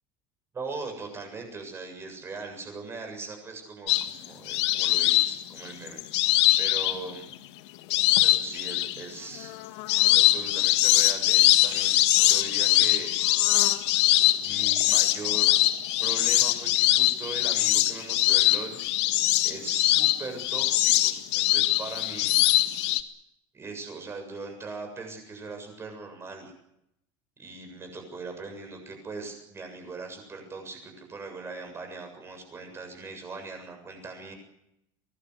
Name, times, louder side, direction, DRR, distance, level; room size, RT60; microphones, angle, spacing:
voice 1, 0.5-7.3 8.2-13.1 14.4-15.6 16.0-18.8 19.4-22.4 23.5-26.5 27.4-34.3, right 3 dB, 15° right, 4 dB, 7.3 m, -40 dB
sound 1, 3.9-7.3 7.9-9.0 9.4-23.0, left 16 dB, 85° left, 1.9 m, -22 dB
24.0 x 20.0 x 8.2 m, 0.81 s
cardioid pair, 170°, 14 cm